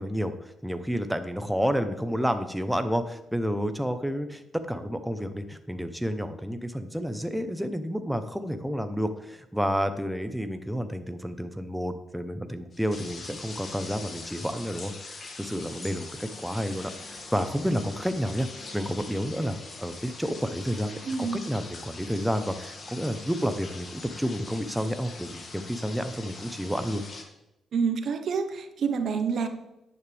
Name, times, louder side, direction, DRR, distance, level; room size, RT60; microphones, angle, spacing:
voice 1, 0.0-27.0, equal, 5° right, 9 dB, 0.9 m, -30 dB
sound 1, 12.7-27.2, left 3 dB, 45° left, 2.3 m, -43 dB
voice 2, 21.0-21.4 27.7-29.5, right 5 dB, 65° right, 7 dB, 1.2 m, -27 dB
10.5 x 9.9 x 3.5 m, 0.92 s
cardioid pair, 70°, 0 cm